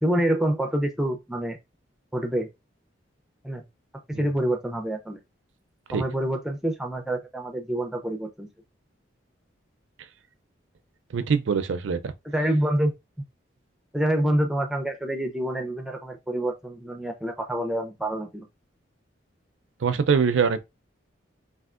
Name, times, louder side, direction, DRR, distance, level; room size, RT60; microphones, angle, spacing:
voice 1, 0.0-1.6 2.1-2.5 3.4-3.6 4.1-5.2 5.9-8.5 12.3-12.9 13.9-18.5, right 1 dB, 5° right, 0.5 m, -27 dB
voice 2, 11.1-12.1 19.8-20.6, right 6 dB, 75° right, 0.4 m, -23 dB
3.4 x 2.4 x 2.4 m
head